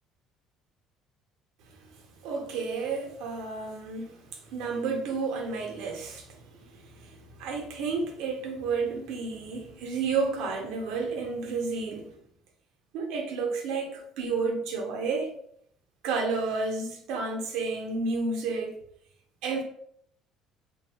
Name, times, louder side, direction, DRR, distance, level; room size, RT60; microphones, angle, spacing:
voice 1, 1.7-12.1 12.9-15.4 16.0-18.8 19.4-19.6, right 4 dB, 75° right, 0.7 m, -31 dB
3.1 x 2.2 x 2.8 m
cardioid pair, 130°, 0 cm